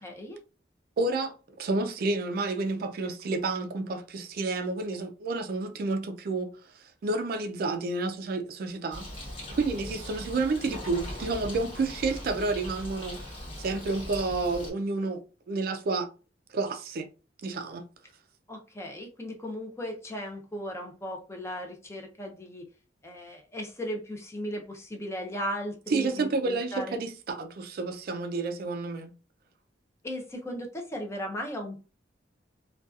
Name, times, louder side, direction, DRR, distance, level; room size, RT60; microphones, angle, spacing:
voice 1, 0.0-0.4 18.5-22.7 23.0-27.0 30.0-31.8, equal, 15° left, 0.5 m, -36 dB
voice 2, 1.0-9.1 9.5-16.1 16.5-17.1 17.4-17.8 25.9-29.1, right 3 dB, 55° right, 0.3 m, -30 dB
Bird, 8.9-14.7, left 1 dB, 30° left, 1.1 m, -40 dB
2.6 x 2.2 x 2.3 m
head